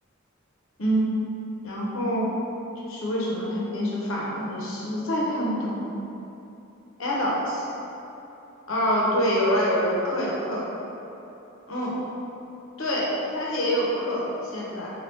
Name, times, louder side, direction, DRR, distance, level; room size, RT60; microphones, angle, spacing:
voice 1, 0.8-1.1 1.6-2.3 2.8-5.7 7.0-7.7 8.7-10.7 11.7-12.0 12.8-14.3 14.5-14.9, equal, 75° left, -5 dB, 0.8 m, -26 dB
4.4 x 2.3 x 3.3 m, 3.0 s
head